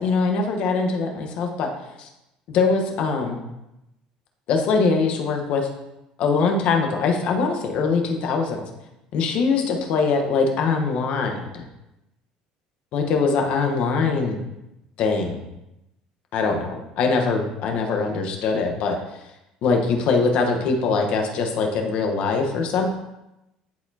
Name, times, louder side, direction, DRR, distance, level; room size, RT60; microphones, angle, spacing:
voice 1, 0.0-1.7 2.0-2.1 2.5-3.4 4.5-5.7 6.2-8.6 9.1-11.6 12.9-14.4 15.0-15.4 16.3-19.0 19.6-22.9, left 4 dB, 55° left, 3 dB, 1.2 m, -22 dB
10.5 x 4.2 x 2.9 m, 0.91 s
cardioid pair, 135°, 2 cm